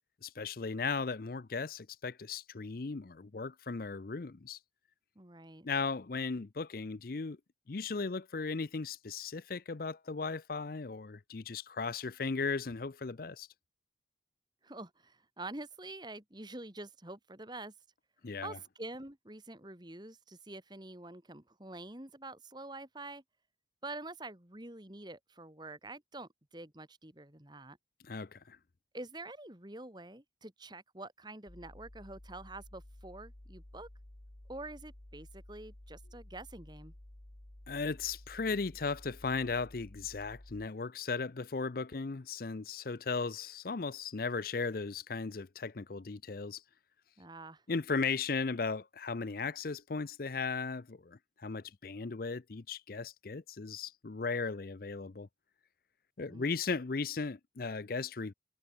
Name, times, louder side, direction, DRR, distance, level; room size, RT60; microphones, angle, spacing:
voice 1, 0.2-4.6 5.6-7.4 7.7-13.5 18.2-18.6 28.0-28.6 37.7-46.6 47.7-55.3 56.2-58.3, left 4 dB, 50° left, 0.6 m, -36 dB
voice 2, 5.2-5.7 14.6-17.7 18.4-23.2 23.8-27.8 28.9-33.9 34.5-36.9 47.2-47.6 56.3-56.5, right 2 dB, 25° right, 2.1 m, -46 dB
sound 1, 31.5-40.7, left 1 dB, 30° left, 1.2 m, -53 dB
head